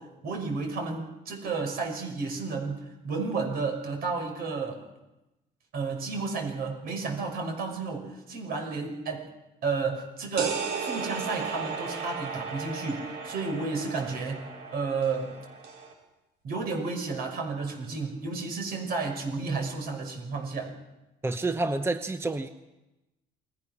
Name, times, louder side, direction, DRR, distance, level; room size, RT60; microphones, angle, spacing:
voice 1, 0.0-4.8 5.7-9.3 9.6-14.4 14.7-15.3 16.4-20.7, right 4 dB, 65° right, 4 dB, 6.0 m, -32 dB
sound 1, 10.4-15.9, right 5 dB, 80° right, 5.5 m, -35 dB
voice 2, 21.2-22.5, right 2 dB, 15° right, 9 dB, 0.9 m, -28 dB
28.5 x 20.5 x 6.1 m, 0.98 s
cardioid pair, 110°, 17 cm